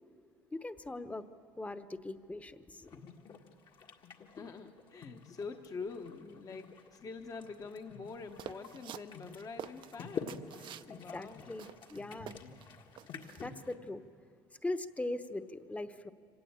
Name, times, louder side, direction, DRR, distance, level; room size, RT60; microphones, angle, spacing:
voice 1, 0.5-1.3 1.5-3.0 10.9-12.4 13.4-14.0 14.6-16.1, left 2 dB, 15° left, 11 dB, 1.0 m, -40 dB
sound 1, 2.8-13.7, left 5 dB, 55° left, 1.7 m, -48 dB
voice 2, 4.4-10.4 10.9-11.5, left 4 dB, 40° left, 5 dB, 1.1 m, -45 dB
sound 2, 8.4-10.9 11.3-11.4 11.6-12.7 13.0-13.4, right 10 dB, 60° right, 0.6 m, -47 dB
25.5 x 17.5 x 8.7 m, 2.4 s
supercardioid pair, 90°, 9 cm